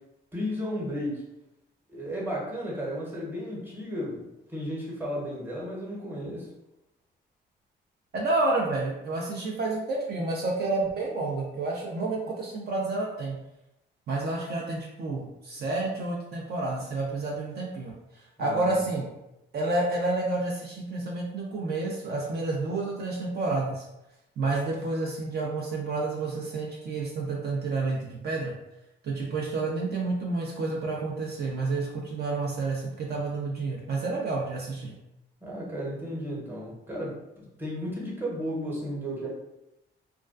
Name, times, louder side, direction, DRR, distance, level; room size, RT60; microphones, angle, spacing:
voice 1, 0.3-1.2 1.9-6.5 18.4-18.8 35.4-37.2 37.6-39.3, equal, 10° right, -5 dB, 0.9 m, -34 dB
voice 2, 8.1-13.4 14.1-19.1 19.5-23.9 24.4-28.6 29.0-35.0, right 2 dB, 55° right, -2 dB, 0.5 m, -30 dB
2.3 x 2.2 x 2.4 m, 0.89 s
cardioid pair, 90°, 20 cm